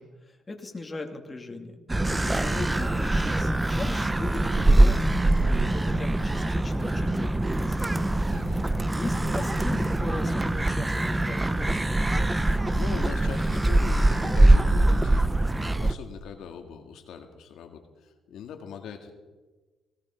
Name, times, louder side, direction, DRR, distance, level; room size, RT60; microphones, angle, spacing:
voice 1, 0.0-1.8 2.1-8.1 8.9-11.8, left 3 dB, 25° left, 3 dB, 2.4 m, -38 dB
sound 1, 1.9-15.9, right 1 dB, 15° right, 0.6 m, -23 dB
voice 2, 2.0-2.4 8.2-8.6 12.3-15.3 15.7-19.2, left 7 dB, 80° left, 4 dB, 1.8 m, -41 dB
18.5 x 17.0 x 4.5 m, 1.2 s
cardioid pair, 90°, 0 cm